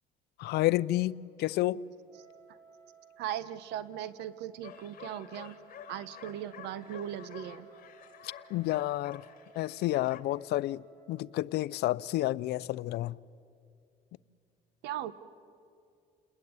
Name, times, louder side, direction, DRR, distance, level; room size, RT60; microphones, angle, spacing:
voice 1, 0.4-1.8 8.5-9.2 9.6-10.8 11.1-13.2, left 16 dB, 75° left, 0.6 m, -30 dB
Wind instrument woodwind instrument, 2.1-11.4, right 7 dB, 55° right, 7.6 m, -59 dB
voice 2, 3.2-5.6 5.9-7.7 14.8-15.1, right 11 dB, 85° right, 1.1 m, -38 dB
sound 1, 4.6-10.2, left 10 dB, 55° left, 2.3 m, -50 dB
29.0 x 20.5 x 9.6 m
cardioid pair, 110°, 17 cm